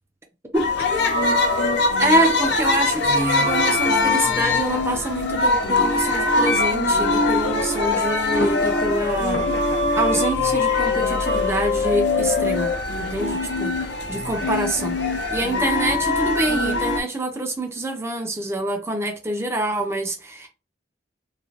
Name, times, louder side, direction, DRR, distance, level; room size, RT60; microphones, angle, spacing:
sound 1, 0.5-17.0, left 2 dB, 70° left, 0.5 m, -22 dB
voice 1, 2.0-12.7 13.0-20.5, right 1 dB, 15° right, 0.5 m, -26 dB
3.2 x 2.2 x 2.5 m
head